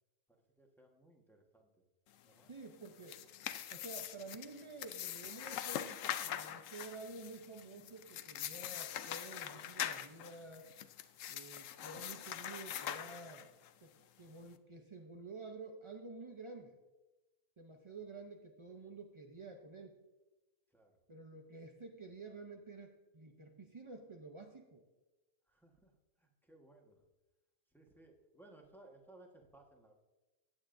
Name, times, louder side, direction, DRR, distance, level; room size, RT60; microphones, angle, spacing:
voice 1, 0.3-1.8 2.2-2.5 20.7-20.9 25.5-25.9 26.2-27.1 27.7-29.9, right 2 dB, ahead, 0 dB, 1.1 m, -62 dB
voice 2, 2.5-3.2 3.7-10.7 11.3-13.5 13.8-16.8 17.6-20.0 21.1-24.8, right 3 dB, 55° right, 3 dB, 0.3 m, -50 dB
sound 1, 2.8-13.7, left 10 dB, 70° left, 0.9 m, -43 dB
16.0 x 8.9 x 2.6 m, 1.1 s
omnidirectional pair, 1.6 m